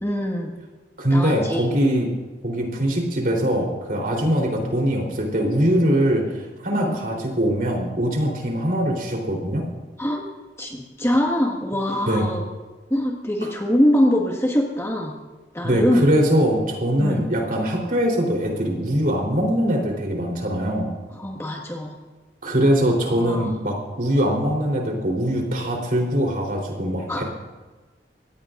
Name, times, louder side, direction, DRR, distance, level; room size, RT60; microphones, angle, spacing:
voice 1, 0.0-0.6 1.1-1.8 6.7-7.0 10.0-10.3 10.6-12.4 12.9-15.1 15.5-16.0 17.0-17.3 21.1-21.9 23.2-23.5 27.1-27.2, left 1 dB, 15° left, 0 dB, 1.8 m, -23 dB
voice 2, 1.0-2.1 2.4-6.3 6.6-9.6 12.1-12.2 13.4-13.5 15.6-20.9 22.4-27.2, equal, 50° right, 0 dB, 3.9 m, -22 dB
24.5 x 18.0 x 2.6 m, 1.2 s
head